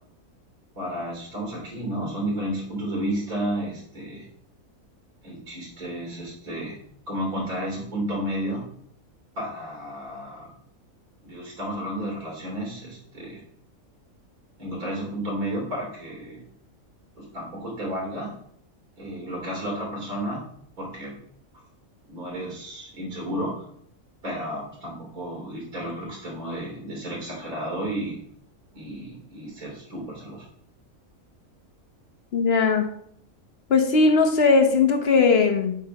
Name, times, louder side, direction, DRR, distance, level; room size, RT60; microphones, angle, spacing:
voice 1, 0.7-4.3 5.2-6.8 7.1-8.6 9.3-10.5 11.2-13.4 14.6-16.4 17.1-18.3 19.0-20.4 20.8-21.2 22.0-23.6 24.2-28.2 28.7-30.5, right 1 dB, 70° right, -2 dB, 3.4 m, -32 dB
voice 2, 32.3-32.9 33.7-35.8, left 4 dB, 50° left, 5 dB, 0.9 m, -19 dB
7.5 x 3.3 x 5.9 m, 0.67 s
omnidirectional pair, 1.5 m